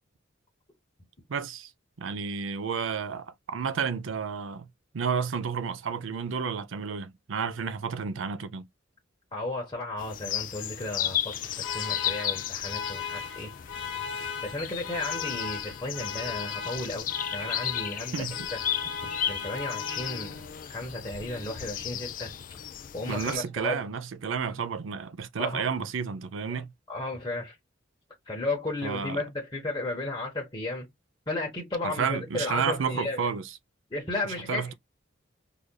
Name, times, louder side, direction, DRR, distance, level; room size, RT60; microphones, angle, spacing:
voice 1, 1.3-1.7 2.0-4.7 4.9-8.7 18.1-18.4 23.1-26.7 28.8-29.2 31.8-33.4 34.5-34.7, right 6 dB, 75° right, 0.5 m, -31 dB
voice 2, 9.3-13.5 14.4-18.3 18.5-18.6 19.0-22.3 22.9-23.8 25.4-25.6 26.9-27.6 28.3-30.9 31.3-33.3 33.9-34.7, left 2 dB, 25° left, 1.1 m, -34 dB
sound 1, 10.0-23.4, left 10 dB, 45° left, 0.4 m, -35 dB
Alarm, 11.2-20.6, left 6 dB, 75° left, 1.0 m, -37 dB
4.9 x 2.5 x 2.2 m
head